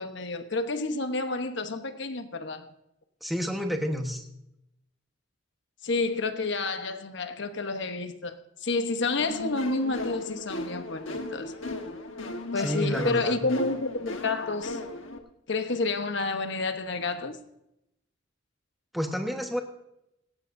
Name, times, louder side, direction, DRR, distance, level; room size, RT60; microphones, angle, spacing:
voice 1, 0.0-2.7 5.8-11.5 12.5-14.8 15.5-17.4, left 3 dB, 65° left, 1.1 m, -29 dB
voice 2, 3.2-4.2 12.6-13.4 18.9-19.6, equal, ahead, 1.2 m, -30 dB
sound 1, 9.2-15.2, left 2 dB, 80° left, 1.4 m, -37 dB
18.0 x 17.0 x 2.7 m
head